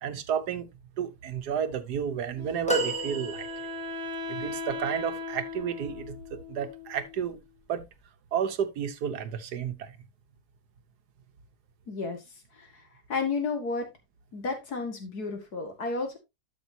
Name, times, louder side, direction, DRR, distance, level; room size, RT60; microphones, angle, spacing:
voice 1, 0.0-0.7 1.0-3.5 4.3-7.4 7.7-7.9 8.3-10.0, right 8 dB, 80° right, 1.5 m, -32 dB
Wind instrument woodwind instrument, 2.3-7.4, left 2 dB, 60° right, 1.7 m, -38 dB
sound 1, 2.7-4.1 4.8-4.9, right 1 dB, 5° left, 1.3 m, -31 dB
voice 2, 11.9-12.2 12.6-12.8 13.1-13.9 14.3-16.2, left 4 dB, 70° left, 2.5 m, -32 dB
12.0 x 6.0 x 2.8 m
omnidirectional pair, 1.7 m